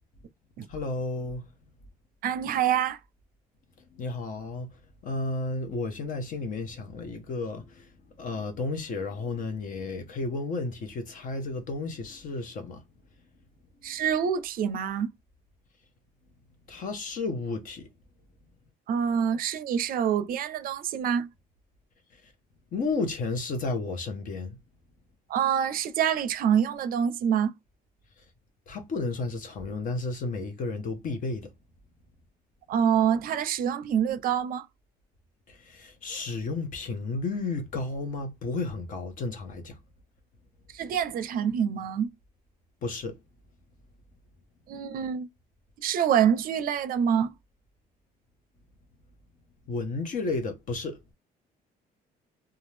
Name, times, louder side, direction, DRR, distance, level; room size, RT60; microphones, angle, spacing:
voice 1, 0.7-1.5 3.9-4.7 5.0-7.9 8.2-12.8 16.7-17.9 22.7-24.6 28.7-31.5 35.5-39.8 42.8-43.2 49.7-51.1, left 3 dB, 50° left, 0.9 m, -32 dB
voice 2, 2.2-3.0 13.8-15.1 18.9-21.3 25.3-27.5 32.7-34.7 40.7-42.1 44.7-45.3 45.8-47.3, right 8 dB, 60° right, 0.5 m, -26 dB
2.5 x 2.3 x 3.2 m
cardioid pair, 110°, 17 cm